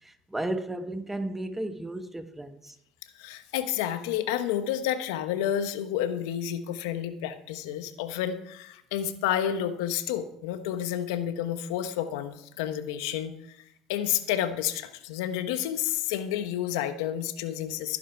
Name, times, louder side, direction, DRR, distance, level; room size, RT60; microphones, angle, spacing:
voice 1, 0.0-2.8, right 1 dB, 10° right, 1.3 m, -34 dB
voice 2, 3.2-13.6 13.9-18.0, left 10 dB, 85° left, 1.2 m, -30 dB
14.5 x 10.5 x 4.7 m
supercardioid pair, 80°, 2 cm